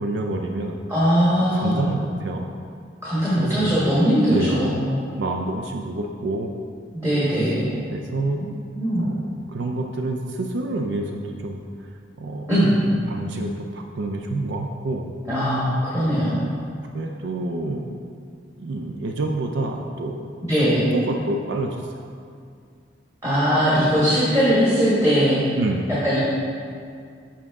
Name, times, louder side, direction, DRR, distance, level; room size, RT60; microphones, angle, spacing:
voice 1, 0.0-0.8 1.6-2.5 3.4-3.7 4.3-4.6 5.2-6.5 7.9-8.4 9.0-11.6 12.2-12.5 13.1-15.1 16.9-17.9 18.6-22.1 25.6-25.9, right 2 dB, 75° right, 2 dB, 0.4 m, -28 dB
voice 2, 0.9-1.8 3.0-5.0 6.9-7.8 8.7-9.0 12.5-12.8 15.2-16.5 20.5-20.8 23.2-25.4 26.0-26.2, equal, 15° right, -10 dB, 1.4 m, -20 dB
7.3 x 5.7 x 3.6 m, 2.3 s
head